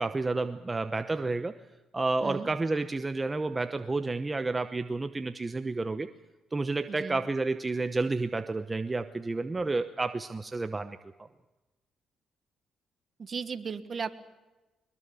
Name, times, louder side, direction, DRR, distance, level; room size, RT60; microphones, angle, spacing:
voice 1, 0.0-1.6 1.9-6.1 6.5-11.0, right 3 dB, 20° right, 9 dB, 0.9 m, -30 dB
voice 2, 2.2-2.5 6.9-7.2 13.2-14.2, right 5 dB, 45° right, 11 dB, 1.4 m, -36 dB
22.0 x 21.5 x 7.0 m, 1.1 s
cardioid pair, 90°, 0 cm